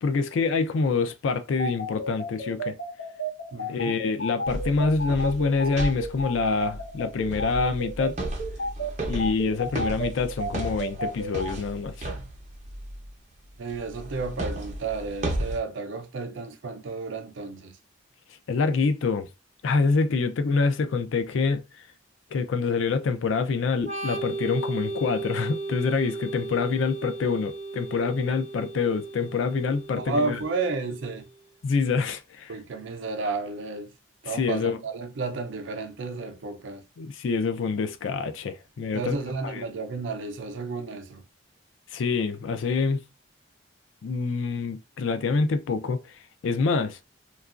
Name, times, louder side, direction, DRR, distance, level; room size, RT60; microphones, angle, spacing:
voice 1, 0.0-2.8 3.7-8.2 9.1-12.1 18.5-19.3 19.6-21.6 22.3-30.4 31.6-32.5 34.3-34.8 37.0-39.2 39.4-39.6 41.9-43.0 44.0-46.2 46.4-47.0, left 4 dB, 75° left, 0.4 m, -26 dB
sound 1, 1.6-11.5, right 1 dB, 60° left, 1.7 m, -32 dB
voice 2, 3.5-4.0 13.6-17.8 30.0-31.3 32.5-33.9 34.2-36.8 38.9-41.2, right 3 dB, 75° right, 0.4 m, -32 dB
sound 2, 4.5-13.1 13.7-15.6, right 1 dB, 35° right, 0.6 m, -34 dB
Organ, 23.8-31.3, right 2 dB, 15° left, 1.7 m, -35 dB
2.9 x 2.3 x 2.4 m
head